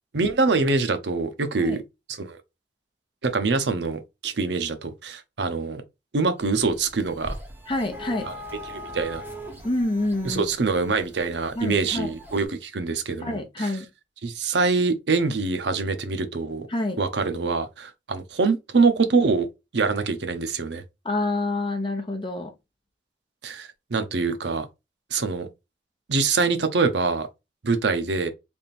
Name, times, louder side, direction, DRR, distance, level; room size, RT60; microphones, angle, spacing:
voice 1, 0.1-1.8 2.2-2.4 3.2-5.8 6.1-7.3 8.3-8.4 8.7-9.2 10.2-13.7 14.2-16.7 17.0-19.5 19.7-20.8 23.4-24.7 25.1-25.5 26.1-27.3 27.6-28.3, right 4 dB, 75° right, 0.7 m, -24 dB
sound 1, 6.4-12.5, equal, 10° right, 1.2 m, -41 dB
voice 2, 7.7-8.3 9.6-10.5 11.5-12.2 13.2-13.9 16.7-17.0 21.0-22.5, left 2 dB, 30° left, 0.9 m, -27 dB
3.5 x 2.5 x 4.1 m
head